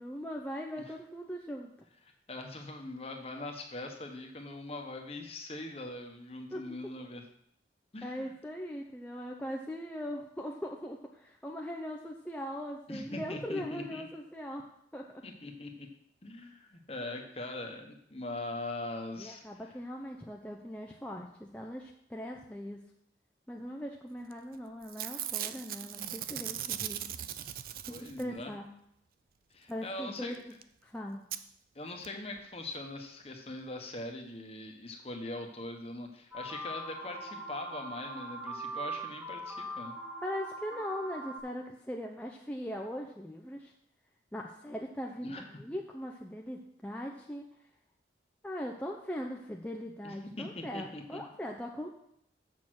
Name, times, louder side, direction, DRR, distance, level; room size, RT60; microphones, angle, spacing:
voice 1, 0.0-1.7 6.5-6.6 8.0-14.7 14.9-15.2 19.2-22.8 23.5-27.0 27.8-28.7 29.7-30.4 30.8-31.2 40.2-43.7 44.3-47.5 48.4-51.9, equal, 10° left, 0 dB, 0.6 m, -40 dB
voice 2, 2.3-7.2 7.9-8.3 12.9-14.0 15.2-15.9 16.2-19.4 27.9-28.5 29.5-30.4 31.7-39.9 45.2-45.5 50.0-51.2, left 2 dB, 35° left, 4 dB, 1.1 m, -41 dB
Packing tape duct tape / Tearing, 24.3-24.6 24.8-28.4 30.3-30.4 30.6-30.7 31.3-31.4 32.0-32.1 32.4-32.5, right 11 dB, 55° right, 0.4 m, -38 dB
sound 1, 36.3-41.4, right 2 dB, 10° right, 1.5 m, -41 dB
7.3 x 6.4 x 6.2 m, 0.73 s
head